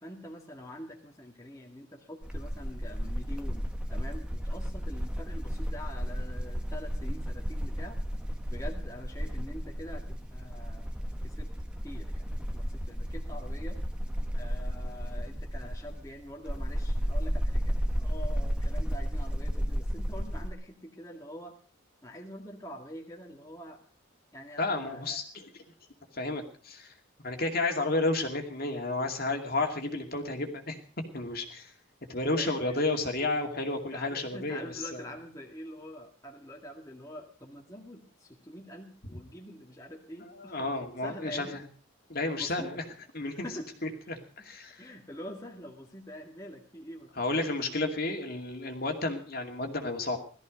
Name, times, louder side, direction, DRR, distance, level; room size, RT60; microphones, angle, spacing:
voice 1, 0.0-8.0 8.5-10.9 11.2-11.5 11.8-12.2 12.5-13.8 14.3-21.5 22.0-23.8 24.3-25.2 32.3-32.8 33.9-40.7 41.0-41.6 42.3-42.7 43.2-43.9 44.8-47.8, equal, 15° left, 0 dB, 2.1 m, -45 dB
sound 1, 2.2-20.5, equal, 5° right, 1.3 m, -33 dB
voice 2, 24.6-25.4 26.1-26.9 27.2-30.8 31.1-31.7 32.1-34.6 34.9-35.0 40.3-41.6 42.1-42.8 43.1-43.5 43.8-44.8 47.2-50.2, left 2 dB, 45° left, 3 dB, 2.5 m, -31 dB
18.0 x 14.0 x 5.2 m, 0.41 s
head